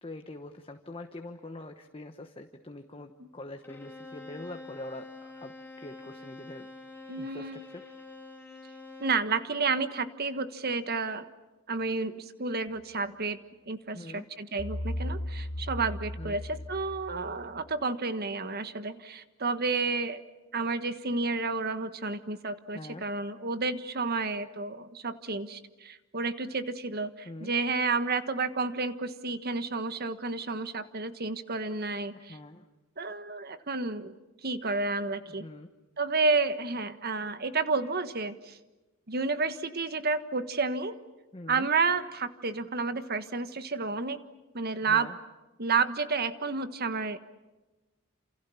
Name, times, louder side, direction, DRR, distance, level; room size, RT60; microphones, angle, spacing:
voice 1, 0.0-6.7 7.2-7.8 13.9-14.3 16.2-16.4 22.7-23.1 27.2-27.5 32.1-32.7 35.3-35.7 41.3-41.7 44.8-45.2, left 2 dB, 25° left, 6 dB, 1.2 m, -44 dB
Bowed string instrument, 3.6-9.3, left 3 dB, 10° left, 2.9 m, -47 dB
voice 2, 7.1-7.6 9.0-11.3 11.7-20.2 20.5-32.4 33.0-34.1 34.4-35.5 36.0-38.6 39.1-40.9 41.5-44.2 44.5-45.1 45.6-47.2, right 4 dB, 50° right, 11 dB, 1.4 m, -31 dB
sound 1, 14.6-17.7, left 1 dB, 65° left, 3.5 m, -36 dB
28.5 x 28.0 x 7.2 m, 1.1 s
head